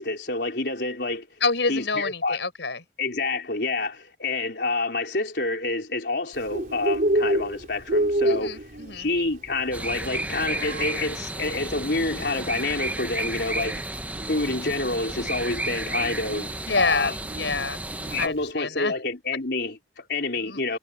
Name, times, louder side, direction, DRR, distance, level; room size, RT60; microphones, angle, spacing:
voice 1, 0.0-1.3 1.7-2.4 3.0-8.6 8.9-13.8 14.3-17.1 18.1-20.8, left 2 dB, 65° left, 4.5 m, -28 dB
voice 2, 1.4-2.8 8.2-9.1 16.7-17.8 18.2-18.9 20.4-20.6, left 4 dB, 85° left, 5.2 m, -28 dB
Bird, 6.3-18.5, right 1 dB, 50° right, 3.6 m, -30 dB
sound 1, 9.7-18.3, right 2 dB, 10° right, 1.0 m, -32 dB
head